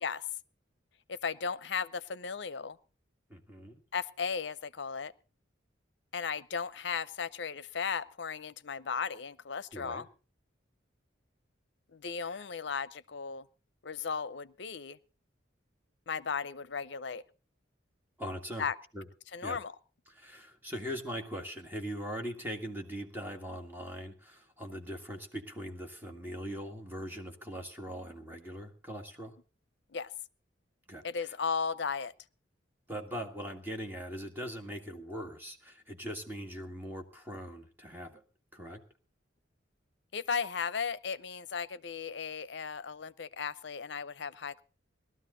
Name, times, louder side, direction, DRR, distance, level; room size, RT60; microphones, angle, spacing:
voice 1, 1.1-2.8 3.9-5.1 6.1-10.0 11.9-13.5 13.8-15.0 16.1-17.2 18.6-18.7 19.3-19.7 29.9-30.1 31.0-32.1 40.1-44.6, left 6 dB, 65° left, 17 dB, 0.6 m, -36 dB
voice 2, 3.3-3.8 9.7-10.0 12.3-12.4 18.2-18.7 18.9-19.1 19.4-19.6 20.1-29.3 30.9-31.3 32.9-38.2 38.5-38.8, equal, 10° right, 3 dB, 1.8 m, -41 dB
18.5 x 13.0 x 3.9 m, 0.36 s
head